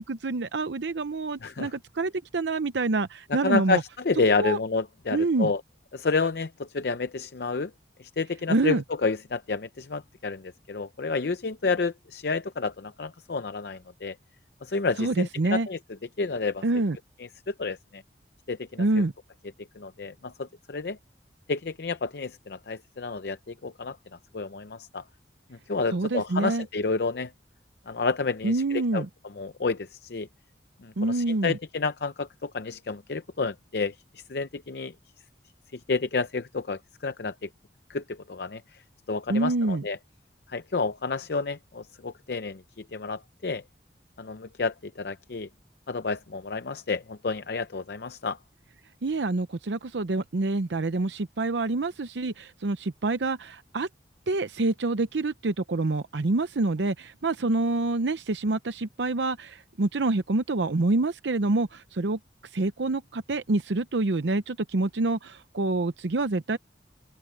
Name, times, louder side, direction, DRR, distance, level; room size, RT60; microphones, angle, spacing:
voice 1, 0.0-3.8 4.3-4.6 5.1-5.5 8.5-8.8 15.0-15.7 16.6-17.0 18.8-19.1 25.9-26.7 28.4-29.1 31.0-31.6 39.3-39.8 49.0-53.9 54.3-62.2 62.5-66.6, right 2 dB, 90° right, 0.7 m, -27 dB
voice 2, 1.4-1.7 3.3-5.6 5.9-7.7 8.0-14.2 14.6-15.8 16.2-16.6 17.5-18.0 18.5-19.0 19.8-21.0 21.5-24.0 24.3-25.0 25.5-27.3 27.9-29.0 29.4-30.3 30.8-34.9 35.7-37.5 37.9-38.6 39.1-40.0 40.5-43.6 44.2-45.5 45.9-48.4, left 4 dB, 65° left, 0.6 m, -30 dB
open air
head